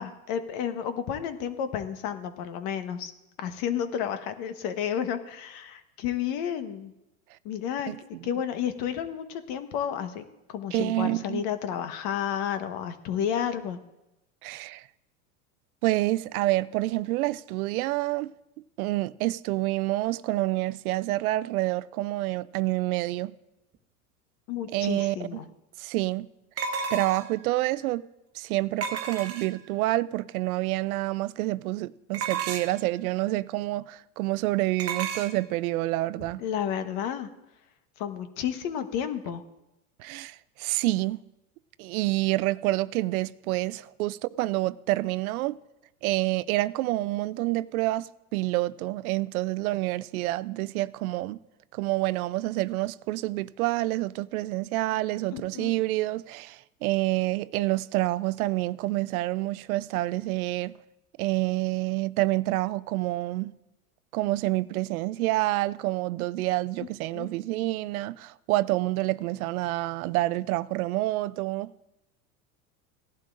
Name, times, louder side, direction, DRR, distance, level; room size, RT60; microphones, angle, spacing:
voice 1, 0.0-3.1 3.4-6.9 7.4-7.9 8.2-13.8 24.5-25.4 36.4-37.3 38.0-39.4 55.3-55.7 67.1-67.3, left 9 dB, 55° left, 1.2 m, -31 dB
voice 2, 7.9-8.3 10.7-11.4 14.4-14.9 15.8-18.3 18.8-23.3 24.7-25.4 25.8-26.3 26.9-28.0 28.3-36.4 40.0-41.2 41.8-45.6 46.0-51.4 51.7-60.8 61.2-63.5 64.1-71.7, right 18 dB, 75° right, 0.5 m, -28 dB
sound 1, 25.0-25.1 26.6-27.4 28.8-29.7 32.1-32.9 34.8-35.3, right 6 dB, 35° right, 1.2 m, -32 dB
17.5 x 11.5 x 2.5 m
hypercardioid pair, 105°, 44 cm